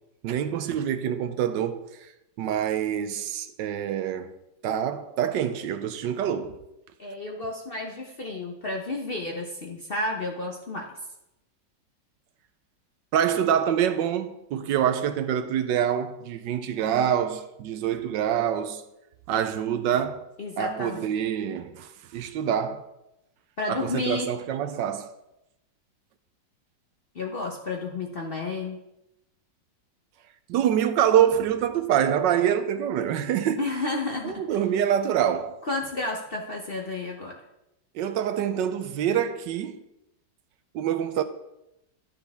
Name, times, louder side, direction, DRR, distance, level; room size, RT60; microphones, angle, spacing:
voice 1, 0.2-1.9 2.4-4.3 4.6-6.6 13.1-18.8 19.3-22.9 23.7-25.1 30.5-33.6 34.2-35.6 37.9-39.8 40.7-41.2, right 9 dB, 80° right, 1.3 m, -26 dB
voice 2, 7.0-10.9 20.4-21.1 23.6-24.3 27.1-28.8 33.6-34.4 35.7-37.4, left 2 dB, 45° left, 0.7 m, -31 dB
11.5 x 7.0 x 3.5 m
omnidirectional pair, 2.0 m